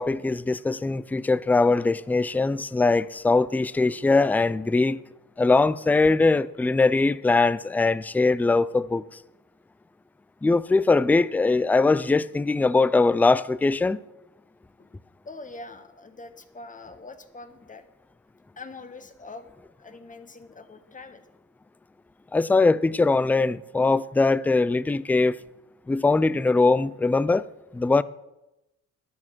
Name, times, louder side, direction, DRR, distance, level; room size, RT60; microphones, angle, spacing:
voice 1, 0.0-5.0 5.4-9.0 10.4-14.0 22.3-25.4 25.9-27.5 27.7-28.0, left 3 dB, 5° left, 0.3 m, -21 dB
voice 2, 15.2-17.8 18.6-19.5 19.8-21.2, left 3 dB, 25° left, 1.3 m, -43 dB
11.5 x 9.8 x 6.1 m
cardioid pair, 90°, 30 cm